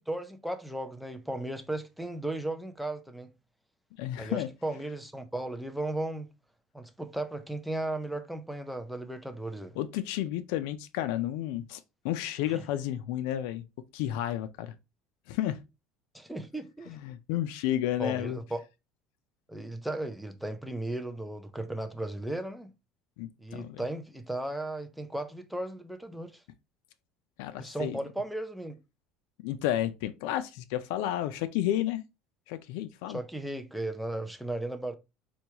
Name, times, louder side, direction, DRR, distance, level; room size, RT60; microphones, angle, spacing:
voice 1, 0.0-3.3 4.2-6.3 6.7-9.7 12.5-12.6 16.1-17.0 18.0-18.6 19.5-22.7 23.4-26.4 27.6-28.8 33.1-35.0, right 1 dB, ahead, 0.4 m, -36 dB
voice 2, 4.0-4.5 9.8-13.7 13.9-14.7 15.3-15.6 16.9-18.4 23.2-23.8 27.4-28.0 29.4-32.0 32.5-33.2, left 12 dB, 75° left, 0.3 m, -31 dB
4.4 x 2.2 x 2.8 m
cardioid pair, 160°, 0 cm